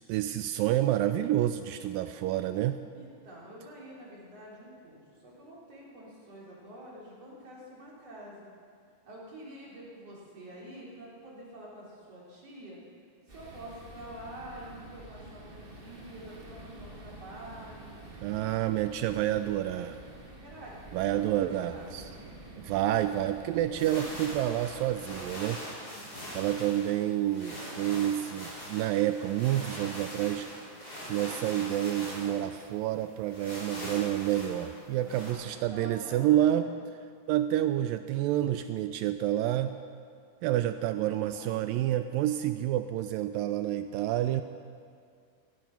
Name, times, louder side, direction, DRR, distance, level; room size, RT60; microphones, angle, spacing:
voice 1, 0.1-2.8 18.2-20.0 20.9-22.1 22.6-25.6 26.3-30.5 30.8-36.7 37.3-39.8 40.4-44.4, right 12 dB, 85° right, 10 dB, 2.0 m, -29 dB
voice 2, 2.9-8.5 9.1-12.8 13.3-18.0 19.2-19.3 20.3-20.8 21.1-21.9 25.8-26.2 34.9-36.8 40.7-41.6, right 1 dB, 40° right, -5 dB, 4.4 m, -47 dB
sound 1, 13.3-25.4, right 2 dB, 25° right, 1.2 m, -48 dB
sound 2, 23.8-35.3, equal, 25° left, 4.8 m, -42 dB
16.5 x 15.0 x 5.9 m, 2.2 s
omnidirectional pair, 4.5 m